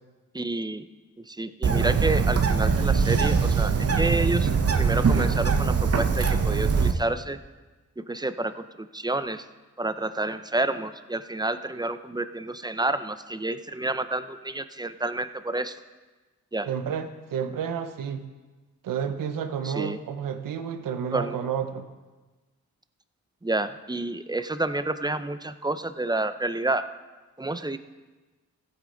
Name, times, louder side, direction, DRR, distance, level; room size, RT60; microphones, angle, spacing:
voice 1, 0.3-0.9 1.3-4.5 4.8-7.4 8.0-9.4 9.8-15.8 16.5-16.7 19.6-20.0 21.1-21.4 23.4-26.8 27.4-27.8, right 2 dB, 15° right, 11 dB, 0.6 m, -29 dB
Bird, 1.6-6.9, right 5 dB, 45° right, 1.0 m, -22 dB
voice 2, 16.6-18.2 18.8-21.8, right 7 dB, 90° right, 9 dB, 0.9 m, -30 dB
14.5 x 8.5 x 3.9 m, 1.2 s
cardioid pair, 55°, 32 cm